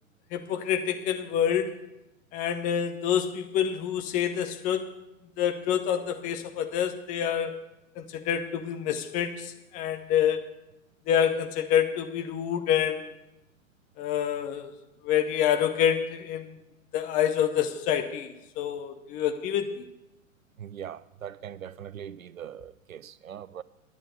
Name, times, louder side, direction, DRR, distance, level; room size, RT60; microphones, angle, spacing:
voice 1, 0.3-1.8 2.3-4.9 5.4-7.6 8.0-10.5 11.1-13.1 14.0-14.7 15.0-16.6 16.9-19.9, left 9 dB, 20° left, 0.6 m, -27 dB
voice 2, 20.6-23.6, right 9 dB, 75° right, 0.6 m, -41 dB
10.5 x 8.6 x 6.6 m
figure-of-eight pair, 105°, 42 cm